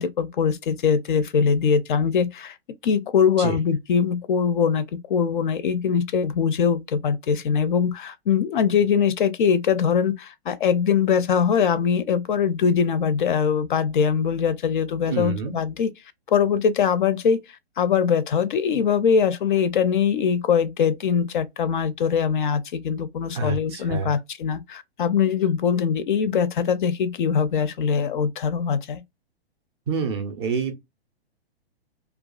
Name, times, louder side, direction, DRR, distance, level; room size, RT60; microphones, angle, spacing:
voice 1, 0.0-2.6 2.8-15.9 16.3-17.4 17.8-29.0, left 7 dB, 50° left, 0.4 m, -22 dB
voice 2, 15.1-15.6 23.3-24.1 29.9-30.7, right 5 dB, 25° right, 0.4 m, -27 dB
2.4 x 2.3 x 2.3 m
figure-of-eight pair, 120°, 32 cm